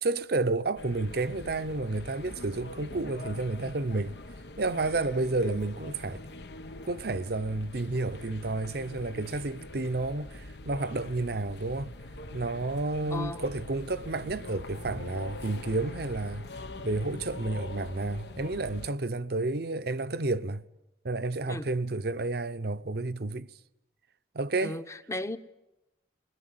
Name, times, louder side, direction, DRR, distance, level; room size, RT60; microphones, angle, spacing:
voice 1, 0.0-4.2 4.6-6.2 6.9-11.9 12.3-16.5 16.8-20.6 21.0-23.5 24.3-24.8, right 2 dB, 65° right, 0.8 m, -31 dB
sound 1, 0.8-18.9, left 2 dB, 70° left, 1.0 m, -43 dB
voice 2, 13.1-13.4 21.5-21.7 24.6-25.4, left 1 dB, 15° left, 0.9 m, -36 dB
22.0 x 20.5 x 9.6 m
head